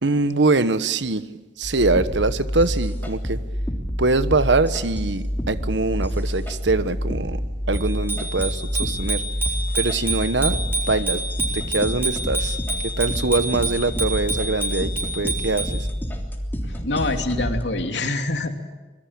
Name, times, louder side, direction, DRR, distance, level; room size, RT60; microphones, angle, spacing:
voice 1, 0.0-1.3 1.6-3.4 4.0-7.4 7.7-9.2 9.7-11.2 11.5-12.6 12.8-15.9, right 3 dB, 90° right, 1.3 m, -23 dB
sound 1, 1.6-17.6, equal, 10° left, 3.3 m, -28 dB
Bicycle bell, 7.7-15.8, right 1 dB, 10° right, 6.3 m, -28 dB
voice 2, 16.6-18.5, left 2 dB, 75° left, 2.8 m, -25 dB
26.0 x 22.5 x 8.8 m
head